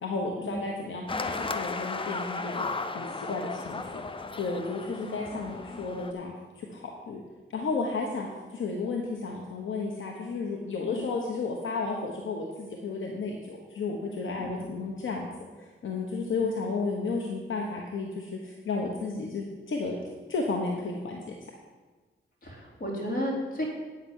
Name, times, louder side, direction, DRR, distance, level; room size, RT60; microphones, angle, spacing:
voice 1, 0.0-2.7 2.9-4.0 4.4-7.2 7.5-15.3 15.6-20.0 20.3-21.3, left 3 dB, 75° left, 0 dB, 1.1 m, -33 dB
sound 1, 1.1-6.1, left 3 dB, 25° left, 0.6 m, -35 dB
voice 2, 22.4-23.6, equal, 45° left, -4 dB, 3.6 m, -34 dB
8.8 x 5.8 x 8.0 m, 1.4 s
wide cardioid pair, 95°, 20 cm